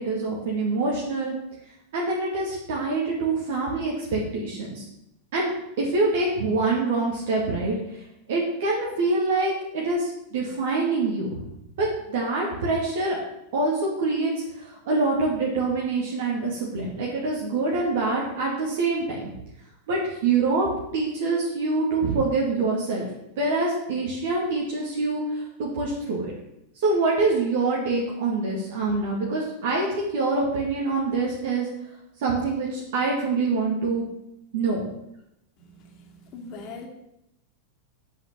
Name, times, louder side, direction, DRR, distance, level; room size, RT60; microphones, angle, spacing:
voice 1, 0.0-1.3 1.9-4.8 5.3-8.0 8.3-11.4 11.8-13.2 13.5-19.0 19.9-20.7 20.9-23.1 23.4-26.3 26.8-31.7 32.2-34.0 34.5-34.8, right 3 dB, 55° right, -3 dB, 2.2 m, -25 dB
voice 2, 35.8-36.9, left 3 dB, 40° left, 2 dB, 2.2 m, -41 dB
8.2 x 5.8 x 7.6 m, 0.85 s
figure-of-eight pair, 90°, 0 cm